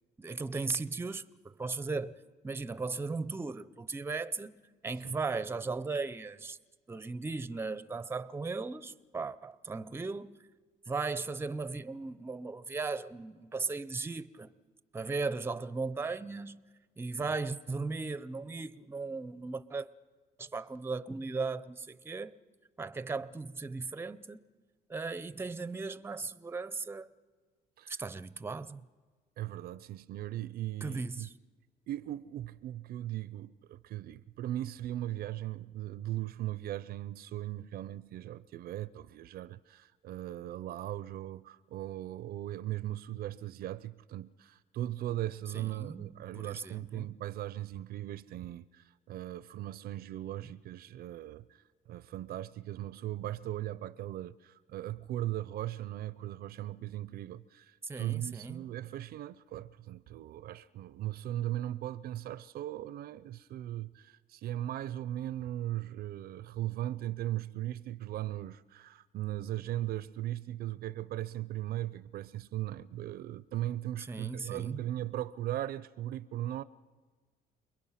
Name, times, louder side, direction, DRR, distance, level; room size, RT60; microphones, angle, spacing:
voice 1, 0.2-2.2 2.4-4.5 4.8-6.6 6.9-10.4 10.9-14.5 14.9-16.6 17.0-19.9 20.4-22.4 22.8-24.4 24.9-27.1 27.9-28.8 30.8-31.3 45.5-47.1 57.8-58.7 74.1-74.8, right 4 dB, 15° right, 0.6 m, -37 dB
voice 2, 29.4-31.3 31.9-51.5 51.9-76.6, right 13 dB, 65° right, 0.6 m, -38 dB
29.0 x 21.5 x 5.8 m
cardioid pair, 110°, 17 cm